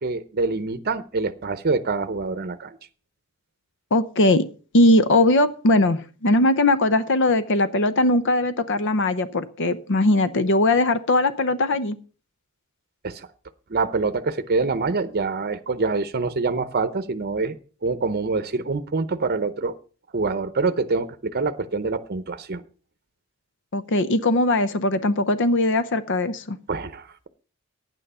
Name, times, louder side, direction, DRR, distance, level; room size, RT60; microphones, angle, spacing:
voice 1, 0.0-2.8 13.0-13.3 13.7-17.5 17.8-19.7 20.1-22.6 26.7-27.3, right 3 dB, 45° right, 10 dB, 0.7 m, -25 dB
voice 2, 3.9-4.5 4.7-12.0 23.7-26.6, left 2 dB, 60° left, 13 dB, 0.7 m, -20 dB
10.5 x 9.1 x 5.5 m, 0.39 s
head